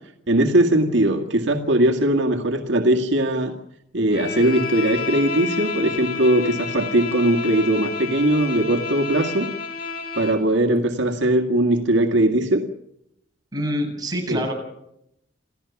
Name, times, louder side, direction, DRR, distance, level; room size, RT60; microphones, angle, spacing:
voice 1, 0.3-3.5 3.9-9.5 10.2-12.6 14.3-14.5, right 1 dB, 75° right, 3 dB, 2.0 m, -20 dB
Bowed string instrument, 4.1-10.5, left 4 dB, 50° left, 4.1 m, -30 dB
voice 2, 13.5-14.5, equal, 20° right, 1 dB, 7.8 m, -26 dB
28.5 x 16.0 x 7.2 m, 0.79 s
head